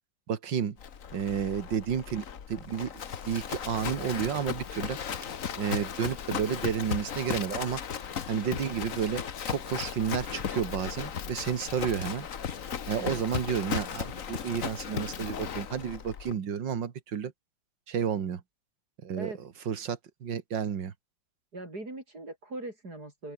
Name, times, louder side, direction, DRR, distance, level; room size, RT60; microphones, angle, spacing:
voice 1, 0.3-0.8 1.1-2.9 3.2-5.0 5.6-7.8 8.3-12.3 12.9-17.3 17.9-18.4 19.0-19.3 19.7-20.9, right 7 dB, 65° right, 2.4 m, -31 dB
Livestock farm animals working animals, 0.8-16.3, left 7 dB, 45° left, 1.5 m, -36 dB
voice 2, 21.5-23.3, right 2 dB, 50° right, 8.2 m, -40 dB
open air
omnidirectional pair, 2.1 m